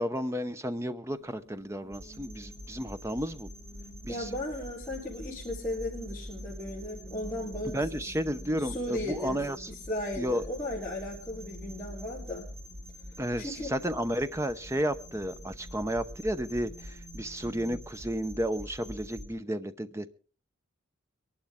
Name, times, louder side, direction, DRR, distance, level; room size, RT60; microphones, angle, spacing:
voice 1, 0.0-3.5 4.0-4.3 7.6-9.7 10.2-10.4 13.2-20.1, equal, 15° right, 10 dB, 0.7 m, -32 dB
sound 1, 1.1-17.8, right 1 dB, 30° left, 2.3 m, -54 dB
sound 2, 1.9-19.3, equal, 85° right, 2.5 m, -45 dB
voice 2, 4.1-8.0 8.7-9.4 9.9-12.5 13.4-13.7, left 1 dB, 10° left, -9 dB, 3.7 m, -36 dB
23.0 x 11.5 x 3.6 m, 0.39 s
head